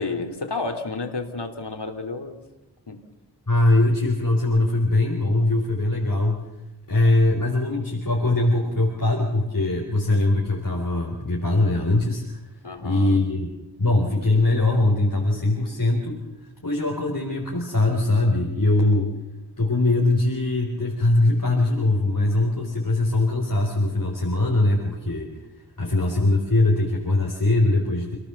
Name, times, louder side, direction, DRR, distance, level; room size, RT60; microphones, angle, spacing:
voice 1, 0.0-2.4 2.9-3.0 12.6-13.2 25.8-25.9, left 3 dB, 85° left, 5 dB, 2.9 m, -31 dB
voice 2, 3.5-6.4 6.9-12.4 12.8-13.5 13.8-16.2 16.6-19.1 19.6-25.4 25.8-28.2, left 2 dB, 55° left, 0 dB, 4.3 m, -21 dB
28.0 x 18.0 x 7.1 m, 0.99 s
wide cardioid pair, 45°, 40 cm